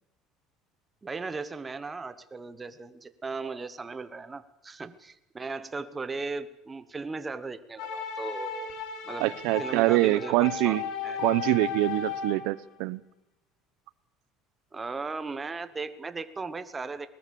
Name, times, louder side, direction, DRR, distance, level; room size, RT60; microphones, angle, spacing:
voice 1, 1.0-8.7 9.1-9.3 9.6-10.8 11.0-11.2 14.7-17.1, right 4 dB, 15° right, 1.0 m, -37 dB
sound 1, 7.8-12.6, left 6 dB, 70° left, 4.1 m, -35 dB
voice 2, 9.2-10.8 11.2-13.0, right 19 dB, 80° right, 0.7 m, -25 dB
20.5 x 19.5 x 7.0 m
cardioid pair, 140°, 0 cm